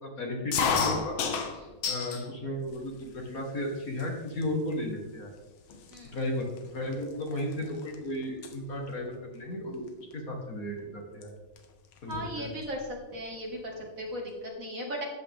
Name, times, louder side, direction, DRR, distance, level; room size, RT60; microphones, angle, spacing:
voice 1, 0.0-1.2 1.9-5.3 6.1-11.3 12.0-12.5, left 1 dB, 45° left, 1 dB, 1.9 m, -34 dB
sound 1, 0.5-2.3 2.7-3.3 4.0-4.1 4.4-4.7 5.4-5.5 5.7-8.0 8.2-8.5 9.9-10.1 11.2-11.3 11.6-11.7 11.9-12.8, left 6 dB, 90° left, 1.8 m, -32 dB
voice 2, 12.1-15.0, equal, 45° right, 0 dB, 2.2 m, -37 dB
12.5 x 8.5 x 3.5 m, 1.2 s
omnidirectional pair, 2.1 m